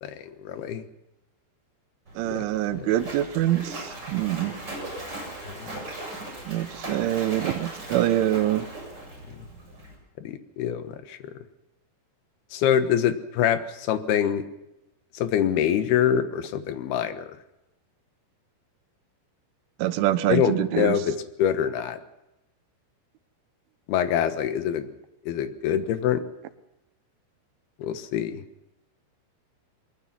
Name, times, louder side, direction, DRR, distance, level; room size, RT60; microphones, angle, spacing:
voice 1, 0.0-0.8 2.3-2.5 2.7-2.9 5.4-5.8 10.2-11.2 12.5-14.4 15.1-17.3 20.3-22.0 23.9-24.9 25.3-26.2 27.8-28.4, left 9 dB, 70° left, 9 dB, 2.9 m, -25 dB
Splash splatter, 2.1-9.9, right 1 dB, 20° right, 8.4 m, -38 dB
voice 2, 2.2-4.5 6.5-8.7 19.8-21.0, right 13 dB, 90° right, 12 dB, 3.5 m, -25 dB
23.0 x 22.0 x 6.0 m, 0.92 s
omnidirectional pair, 5.4 m